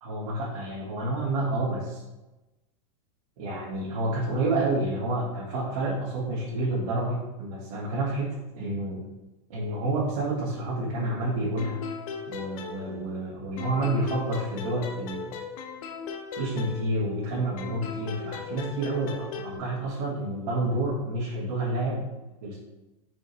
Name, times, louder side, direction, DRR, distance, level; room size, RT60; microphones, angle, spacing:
voice 1, 0.0-2.0 3.4-9.0 9.5-11.8 12.3-15.4 16.4-22.1 22.4-22.6, right 2 dB, 65° right, -6 dB, 1.7 m, -29 dB
sound 1, 11.6-13.3 13.6-17.2 17.6-19.6, left 6 dB, 70° left, 0.8 m, -38 dB
5.2 x 4.7 x 4.1 m, 1.0 s
supercardioid pair, 145°, 19 cm